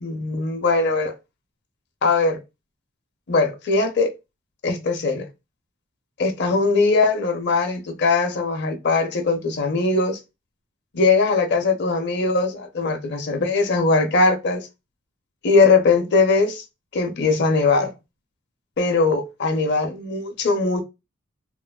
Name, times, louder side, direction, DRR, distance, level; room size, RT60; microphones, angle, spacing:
voice 1, 0.0-1.1 2.0-2.4 3.3-4.1 4.6-5.3 6.2-10.2 10.9-14.7 15.4-16.6 16.9-17.9 18.8-20.8, left 3 dB, 55° left, 0.6 m, -20 dB
3.0 x 2.1 x 2.2 m
head